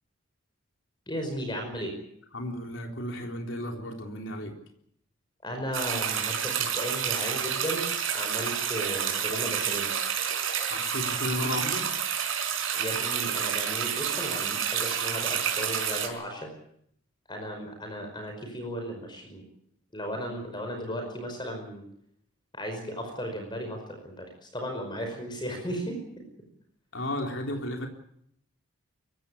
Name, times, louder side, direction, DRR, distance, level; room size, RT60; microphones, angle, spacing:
voice 1, 1.1-1.9 5.4-7.9 8.1-9.9 12.7-16.5 17.3-19.4 19.9-21.9 22.5-26.0, equal, 20° left, 4 dB, 5.1 m, -35 dB
voice 2, 2.3-4.6 10.7-11.9 26.9-27.9, left 1 dB, 60° left, 3 dB, 3.8 m, -33 dB
sound 1, 5.7-16.1, right 8 dB, 65° right, 5.0 m, -29 dB
23.5 x 16.0 x 9.8 m, 0.71 s
head